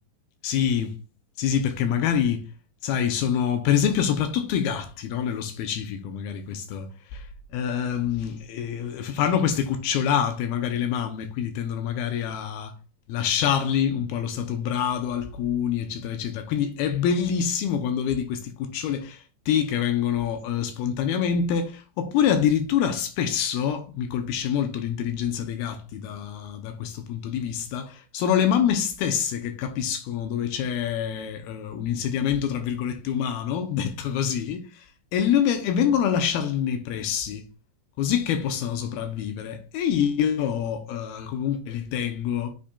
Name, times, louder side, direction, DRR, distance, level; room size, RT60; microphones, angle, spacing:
voice 1, 0.4-1.0 1.4-2.5 2.8-12.8 13.1-37.4 38.0-42.5, left 8 dB, 85° left, 2.2 m, -26 dB
7.3 x 7.1 x 2.3 m
omnidirectional pair, 5.2 m